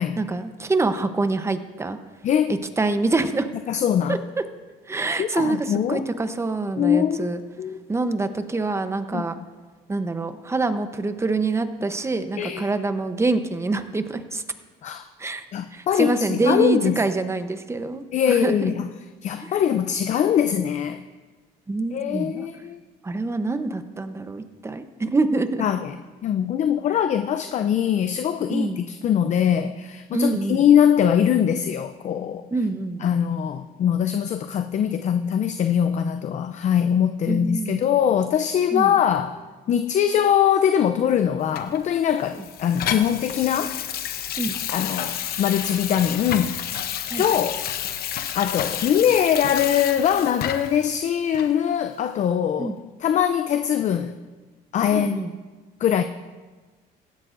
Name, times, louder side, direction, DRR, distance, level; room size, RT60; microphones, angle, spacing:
voice 1, 0.2-2.0 2.5-3.5 4.1-4.2 4.9-7.4 7.9-9.3 9.9-14.4 15.2-15.4 15.7-18.7 19.4-19.5 21.7-22.5 23.0-25.6 28.5-28.8 30.1-30.6 32.5-33.0 37.3-37.9 38.7-38.9 44.4-44.5 47.1-47.2 52.6-52.8 54.9-55.3, right 3 dB, 15° right, 9 dB, 0.8 m, -25 dB
voice 2, 2.2-2.5 3.7-4.2 5.2-6.0 6.8-7.8 9.1-9.3 12.4-12.7 14.8-15.0 15.5-17.0 18.1-18.8 19.2-21.0 21.9-22.8 25.6-25.9 26.2-32.5 33.0-39.4 39.7-43.8 44.7-46.6 47.2-47.6 48.3-52.7 53.0-54.2 54.7-55.2 55.8-56.0, left 9 dB, 45° left, 9 dB, 0.5 m, -22 dB
Water tap faucet / Sink (filling or washing), 41.6-50.8 51.3-51.5, left 9 dB, 65° left, 0.8 m, -30 dB
16.0 x 12.5 x 2.6 m, 1.3 s
cardioid pair, 110°, 17 cm